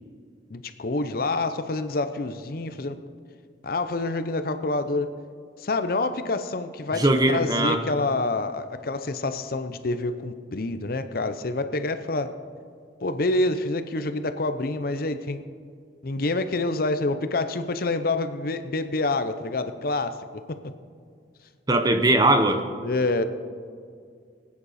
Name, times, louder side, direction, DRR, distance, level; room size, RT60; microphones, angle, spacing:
voice 1, 0.5-3.0 3.6-5.1 5.6-12.3 13.0-15.4 16.0-20.6 22.8-23.2, left 2 dB, 50° left, 10 dB, 0.7 m, -27 dB
voice 2, 6.9-7.8 21.7-22.6, right 2 dB, 20° right, 7 dB, 0.8 m, -20 dB
20.5 x 9.5 x 4.2 m, 2.2 s
head